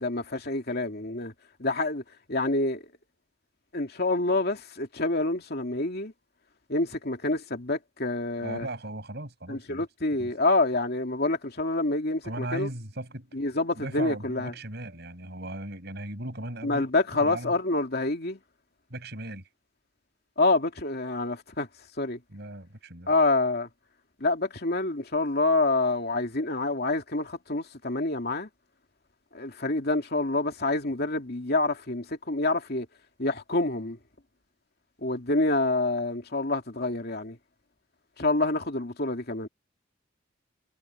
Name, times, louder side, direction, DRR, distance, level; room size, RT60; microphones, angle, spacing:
voice 1, 0.0-1.3 1.6-2.0 2.3-2.8 3.7-6.1 6.7-8.7 9.5-12.7 13.3-14.5 16.6-18.4 20.4-21.7 22.0-22.2 23.1-23.7 24.2-28.5 29.3-32.9 33.2-34.0 35.0-37.4 38.2-39.5, left 2 dB, 55° left, 2.7 m, -27 dB
voice 2, 8.4-9.8 10.2-10.3 12.2-13.4 13.8-16.9 17.2-17.5 18.9-19.4 22.3-23.1, right 1 dB, 55° right, 7.1 m, -37 dB
head